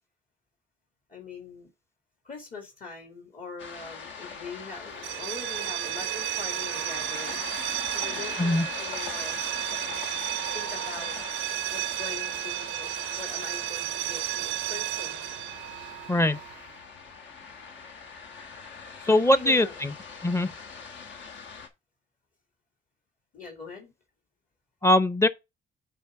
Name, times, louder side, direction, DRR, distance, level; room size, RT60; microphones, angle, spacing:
voice 1, 1.1-1.7 2.2-7.4 7.9-9.4 10.5-11.2 11.7-12.9 13.2-15.2 19.0-19.7 23.3-23.9, left 4 dB, 45° left, 2.4 m, -42 dB
sound 1, 3.6-21.7, left 5 dB, 70° left, 1.3 m, -41 dB
sound 2, 5.0-16.7, right 17 dB, 90° right, 0.4 m, -33 dB
voice 2, 16.1-16.4 19.1-19.9 20.2-20.5 24.8-25.3, left 1 dB, 15° left, 0.6 m, -21 dB
9.1 x 4.2 x 3.5 m
cardioid pair, 90°, 20 cm